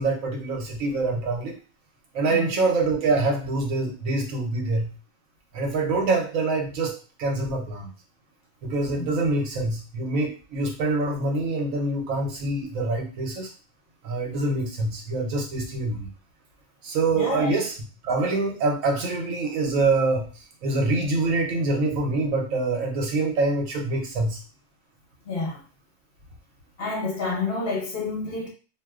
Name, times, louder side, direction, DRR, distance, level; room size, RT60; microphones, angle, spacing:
voice 1, 0.0-1.5 2.1-4.9 5.5-7.9 8.6-13.5 14.0-16.1 16.8-17.8 18.0-24.4, right 3 dB, 85° right, 1.2 m, -25 dB
voice 2, 17.1-17.6 25.3-25.6 26.8-28.5, left 3 dB, 55° left, 1.0 m, -29 dB
2.6 x 2.1 x 3.5 m
omnidirectional pair, 1.3 m